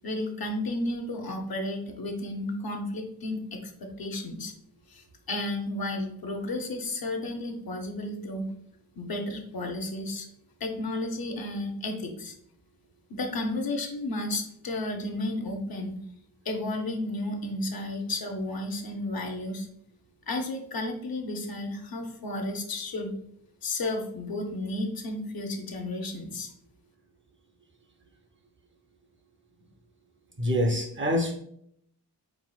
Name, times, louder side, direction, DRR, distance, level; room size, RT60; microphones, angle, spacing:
voice 1, 0.0-4.5 4.9-8.5 9.0-10.3 10.6-12.3 13.1-16.0 16.4-19.7 20.3-23.1 23.6-26.5, left 2 dB, 60° left, 4 dB, 0.8 m, -33 dB
voice 2, 30.4-31.4, equal, 30° right, 4 dB, 0.6 m, -25 dB
4.6 x 4.1 x 2.3 m, 0.71 s
wide cardioid pair, 125°, 41 cm